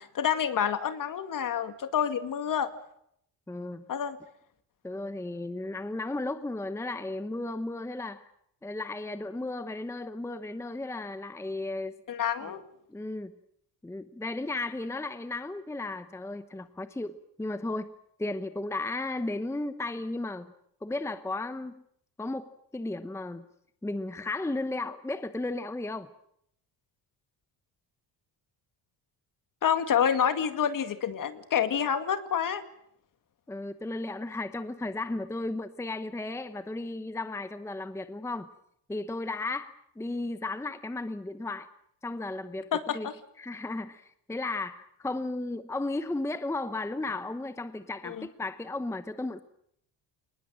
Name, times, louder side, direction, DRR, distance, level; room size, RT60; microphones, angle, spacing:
voice 1, 0.0-2.7 3.9-4.2 12.1-12.6 29.6-32.6 42.7-43.1 48.0-48.3, left 8 dB, 50° left, 10 dB, 2.2 m, -28 dB
voice 2, 3.5-3.8 4.8-8.3 8.6-12.0 12.4-12.5 12.9-13.3 13.8-17.9 18.2-20.5 20.8-21.8 22.2-23.4 23.8-26.1 33.5-38.5 38.9-41.7 42.0-43.1 43.4-49.4, left 2 dB, 5° left, 11 dB, 0.9 m, -34 dB
28.0 x 19.5 x 7.6 m, 0.72 s
cardioid pair, 140°, 42 cm